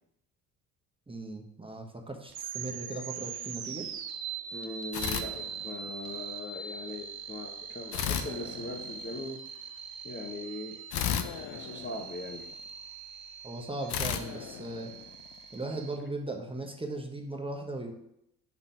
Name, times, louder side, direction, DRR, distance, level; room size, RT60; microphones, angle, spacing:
voice 1, 1.1-3.9 13.4-14.9 15.5-17.9, right 2 dB, 10° right, 2 dB, 1.1 m, -38 dB
sound 1, 2.3-16.0, right 7 dB, 50° right, 0.8 m, -42 dB
voice 2, 4.5-9.4 10.0-10.8 11.4-12.5, left 2 dB, 25° left, 1 dB, 0.9 m, -40 dB
sound 2, 4.9-6.1 7.9-9.3 10.9-12.6 13.9-15.5, left 9 dB, 60° left, 0.7 m, -35 dB
5.8 x 3.8 x 4.6 m, 0.76 s
hypercardioid pair, 50°, 45 cm